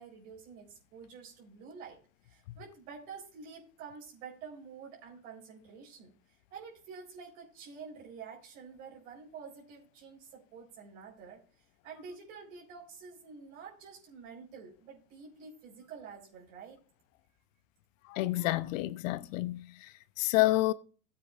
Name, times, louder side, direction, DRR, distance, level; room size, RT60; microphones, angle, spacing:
voice 1, 0.0-11.4 11.8-16.8, right 5 dB, 70° right, 4.5 m, -49 dB
voice 2, 18.1-19.9 20.2-20.7, left 17 dB, 70° left, 0.8 m, -29 dB
16.0 x 8.6 x 2.5 m
hypercardioid pair, 95°, 41 cm